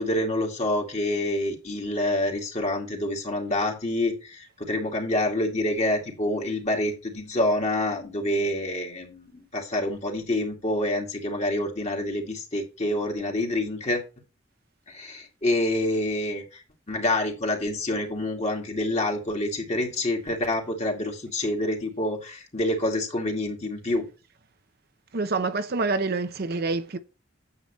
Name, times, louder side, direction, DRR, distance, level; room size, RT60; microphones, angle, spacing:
voice 1, 0.0-14.0 14.9-16.6 16.9-24.0, left 1 dB, 35° left, 2.4 m, -27 dB
voice 2, 25.1-27.0, right 3 dB, 50° right, 0.7 m, -27 dB
9.5 x 7.9 x 3.1 m
head